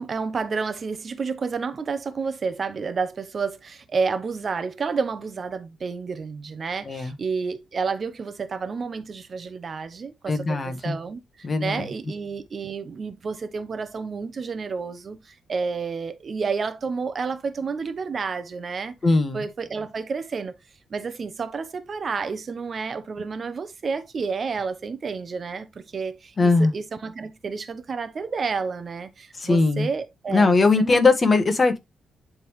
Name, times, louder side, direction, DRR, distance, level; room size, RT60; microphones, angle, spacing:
voice 1, 0.0-18.9 19.3-20.6 20.9-31.0, right 5 dB, 45° right, 0.9 m, -30 dB
voice 2, 10.3-11.0 11.4-11.9 19.0-19.4 26.4-26.7 29.4-29.9 30.3-31.8, left 3 dB, 35° left, 1.4 m, -20 dB
10.5 x 3.7 x 3.2 m
cardioid pair, 105°, 0 cm